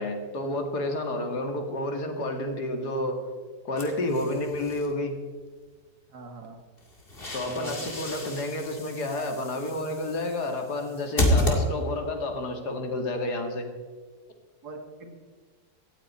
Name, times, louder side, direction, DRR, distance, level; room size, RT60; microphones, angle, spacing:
voice 1, 0.0-3.2 3.6-5.1 7.3-13.7, left 1 dB, 90° left, 5 dB, 2.6 m, -30 dB
sound 1, 3.8-4.9 6.8-12.2, left 1 dB, 35° left, 2.5 m, -30 dB
voice 2, 6.1-6.6 7.4-7.9 14.6-15.1, right 3 dB, 75° right, 4 dB, 2.4 m, -41 dB
18.0 x 14.0 x 4.3 m, 1.5 s
omnidirectional pair, 1.7 m